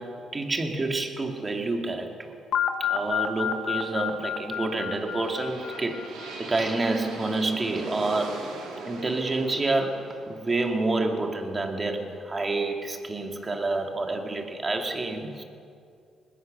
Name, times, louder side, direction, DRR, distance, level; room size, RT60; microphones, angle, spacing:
voice 1, 0.0-2.4 2.8-8.5 8.8-15.4, right 2 dB, 25° right, 4 dB, 2.6 m, -28 dB
sound 1, 2.5-6.5, left 8 dB, 70° left, 1.5 m, -30 dB
sound 2, 4.5-12.4, right 3 dB, 90° right, 3.4 m, -41 dB
20.5 x 20.5 x 6.8 m, 2.4 s
cardioid pair, 90°, 0 cm